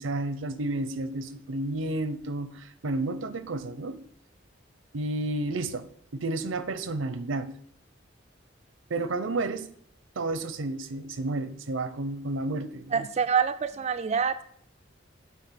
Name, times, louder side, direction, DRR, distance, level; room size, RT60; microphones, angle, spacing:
voice 1, 0.0-4.0 4.9-5.8 6.1-7.5 8.9-9.7 10.2-13.1, right 2 dB, 85° right, 12 dB, 0.7 m, -31 dB
voice 2, 12.9-14.4, right 6 dB, 35° right, 9 dB, 0.3 m, -26 dB
8.3 x 4.6 x 5.9 m, 0.64 s
head